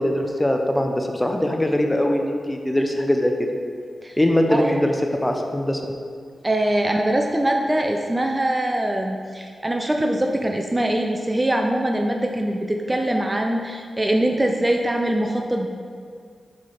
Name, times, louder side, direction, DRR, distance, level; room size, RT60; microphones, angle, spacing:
voice 1, 0.0-3.3 4.2-5.8, left 1 dB, 15° left, 3 dB, 0.8 m, -21 dB
voice 2, 4.5-4.8 6.4-15.7, right 1 dB, 20° right, 3 dB, 0.5 m, -23 dB
5.8 x 4.8 x 4.2 m, 2.1 s
cardioid pair, 45°, 0 cm